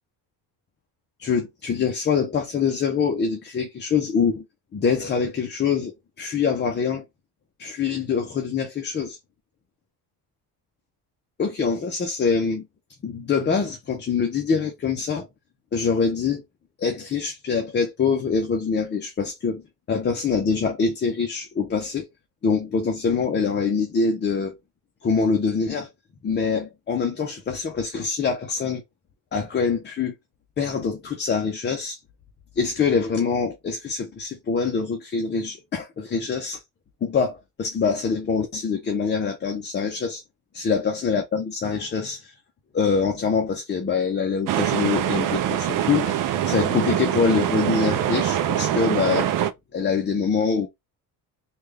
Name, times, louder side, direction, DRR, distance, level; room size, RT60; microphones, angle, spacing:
voice 1, 1.2-4.4 4.7-7.0 7.6-9.2 11.4-12.7 13.0-15.3 15.7-16.4 16.8-19.6 19.9-22.1 22.4-24.6 25.0-25.9 26.2-28.8 29.3-30.2 30.6-32.0 32.6-36.6 37.0-40.2 40.5-42.3 42.7-49.3 49.7-50.7, left 5 dB, 25° left, 0.6 m, -24 dB
sound 1, 44.5-49.5, right 11 dB, 55° right, 0.5 m, -24 dB
3.3 x 2.4 x 3.3 m
cardioid pair, 130°, 40 cm